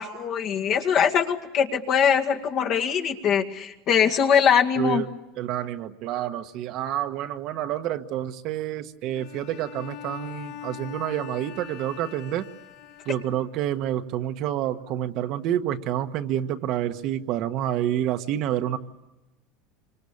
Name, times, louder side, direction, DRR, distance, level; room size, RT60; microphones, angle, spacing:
voice 1, 0.0-5.0, left 7 dB, 40° left, 3 dB, 2.1 m, -22 dB
voice 2, 4.8-5.1 5.4-12.5 13.0-18.8, right 11 dB, 50° right, 8 dB, 1.3 m, -28 dB
Bowed string instrument, 9.1-13.7, left 10 dB, 65° left, 4.5 m, -42 dB
27.0 x 25.5 x 8.6 m, 1.0 s
supercardioid pair, 145°, 0 cm